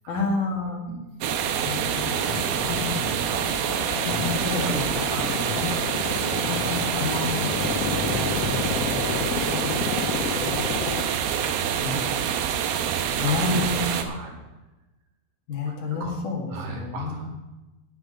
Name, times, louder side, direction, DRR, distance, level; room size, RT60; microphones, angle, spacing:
voice 1, 0.1-0.8 1.6-2.2 4.4-4.9 7.0-7.7 8.1-9.9 10.2-10.6 11.8-12.2 13.2-13.8 15.5-16.4 16.7-17.3, left 4 dB, 50° left, -1 dB, 2.9 m, -30 dB
sound 1, 1.2-14.0, right 8 dB, 85° right, 2.1 m, -26 dB
voice 2, 1.5-3.9 4.2-7.5 8.3-9.0 10.1-11.2 11.7-14.5 15.7-16.2 16.5-17.3, right 3 dB, 60° right, 1 dB, 3.8 m, -40 dB
sound 2, 1.8-11.0, left 8 dB, 90° left, 3.4 m, -31 dB
18.0 x 6.2 x 5.2 m, 1.1 s
omnidirectional pair, 5.6 m